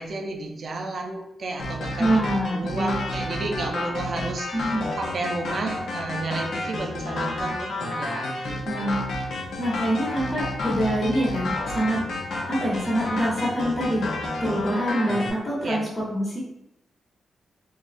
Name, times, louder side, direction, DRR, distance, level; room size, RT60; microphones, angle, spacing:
voice 1, 0.0-2.2 2.5-8.9 15.6-15.8, right 2 dB, 60° right, 3 dB, 0.5 m, -32 dB
sound 1, 1.6-15.3, left 2 dB, 80° left, 0.6 m, -30 dB
voice 2, 2.0-2.9 4.5-4.8 8.6-12.0 12.5-14.1 14.4-16.4, equal, 30° left, -5 dB, 1.1 m, -25 dB
3.4 x 2.2 x 2.5 m, 0.84 s
cardioid pair, 60°, 0 cm